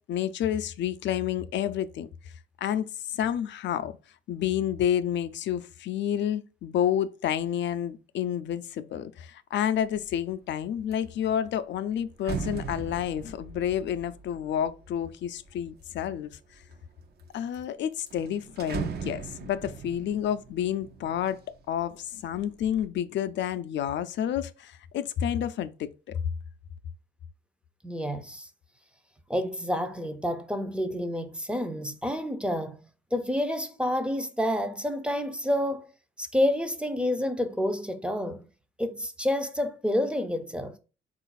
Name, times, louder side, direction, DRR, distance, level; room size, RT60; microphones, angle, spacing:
voice 1, 0.1-2.1 2.6-3.9 4.3-16.3 17.3-21.4 21.7-26.2, left 10 dB, 65° left, 0.4 m, -29 dB
sound 1, 9.8-10.2 10.6-15.9 16.5-17.2 17.5-17.6 17.9-21.8 22.2-22.9, right 5 dB, 55° right, 0.6 m, -39 dB
voice 2, 27.8-28.5 29.3-32.8 33.1-35.9 36.2-38.4 38.8-40.7, left 1 dB, 5° right, 0.5 m, -29 dB
3.9 x 2.4 x 4.0 m
cardioid pair, 90°, 20 cm